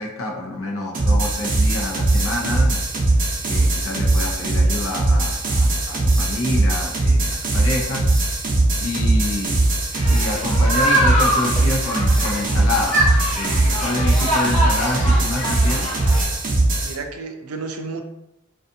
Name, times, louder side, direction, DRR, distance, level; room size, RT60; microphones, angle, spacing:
voice 1, 0.0-8.0 8.8-9.6 10.1-15.9, left 1 dB, 70° left, 0 dB, 0.6 m, -27 dB
sound 1, 0.9-16.9, right 2 dB, 40° right, 0.6 m, -20 dB
sound 2, 9.9-16.2, equal, 30° left, 0.7 m, -24 dB
voice 2, 13.6-14.0 16.8-18.0, right 4 dB, 85° right, 5 dB, 0.4 m, -32 dB
2.5 x 2.3 x 2.6 m, 0.88 s
head